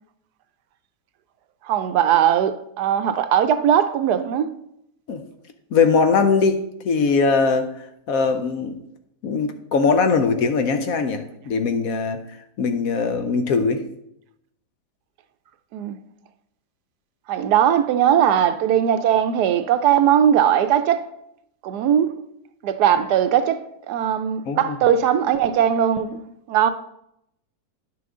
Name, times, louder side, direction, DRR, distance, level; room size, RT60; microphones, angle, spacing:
voice 1, 1.6-4.5 15.7-16.0 17.3-21.0 21.6-22.1 22.6-26.2 26.5-26.7, right 9 dB, 75° right, 1.1 m, -19 dB
voice 2, 5.7-6.6 6.8-7.7 8.1-8.7 9.2-12.2 12.6-13.8 24.5-24.8, left 4 dB, 65° left, 1.0 m, -20 dB
10.5 x 6.0 x 3.7 m
omnidirectional pair, 1.8 m